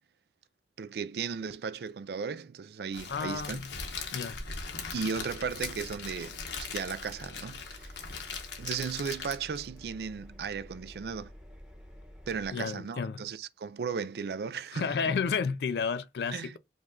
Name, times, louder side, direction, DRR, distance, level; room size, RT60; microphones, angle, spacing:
voice 1, 0.8-3.6 4.9-8.2 8.6-11.3 12.3-15.0 16.3-16.6, right 6 dB, 65° right, 0.3 m, -36 dB
Crackle, 2.9-9.7, left 5 dB, 85° left, 1.1 m, -40 dB
voice 2, 3.1-3.7 4.1-4.4 12.5-13.2 14.7-16.6, left 5 dB, 65° left, 0.4 m, -31 dB
Engine, 5.2-12.5, equal, 5° right, 1.0 m, -50 dB
5.2 x 2.4 x 3.7 m
head